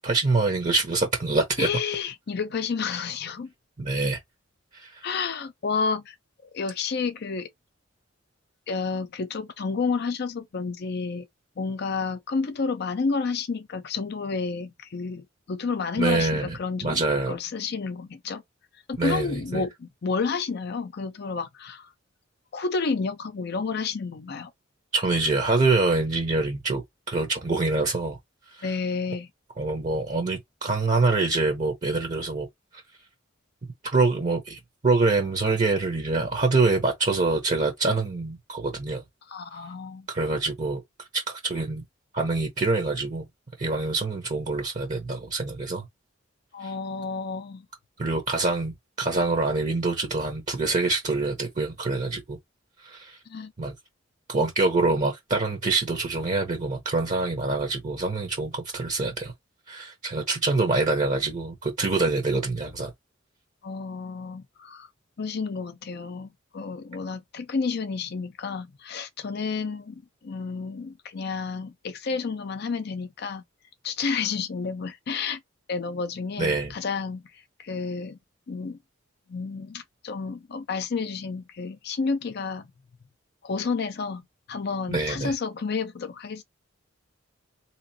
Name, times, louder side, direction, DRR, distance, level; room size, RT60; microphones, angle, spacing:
voice 1, 0.0-1.7 3.8-4.2 4.7-5.0 16.0-16.5 16.8-17.3 19.0-19.6 24.9-28.2 28.6-28.7 29.6-32.5 33.8-39.0 40.1-40.8 41.1-41.8 42.1-43.3 43.6-45.9 46.6-46.7 48.0-48.7 49.0-52.4 52.8-53.2 53.6-53.7 54.3-59.3 59.7-62.9 76.4-76.7 84.9-85.3, right 3 dB, 35° right, 0.8 m, -25 dB
voice 2, 1.6-3.5 5.0-6.1 6.5-7.5 8.7-11.3 11.6-17.0 17.3-18.4 18.9-21.9 22.5-24.5 28.6-29.3 39.3-40.1 46.5-47.7 53.3-53.5 63.6-64.9 65.2-73.4 73.8-75.4 75.7-77.2 77.6-78.2 78.5-78.8 79.3-82.7 83.4-84.2 84.5-86.4, left 4 dB, 50° left, 0.5 m, -30 dB
3.8 x 2.9 x 2.7 m
head